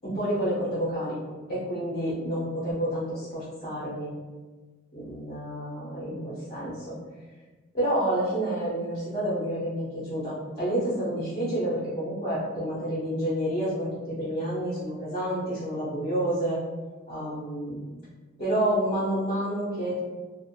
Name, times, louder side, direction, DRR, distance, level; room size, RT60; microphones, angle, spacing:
voice 1, 0.0-1.2 1.5-4.1 4.9-7.0 7.7-16.6 17.1-17.8 18.4-20.0, right 1 dB, 30° left, -10 dB, 0.9 m, -29 dB
2.6 x 2.1 x 2.8 m, 1.3 s
head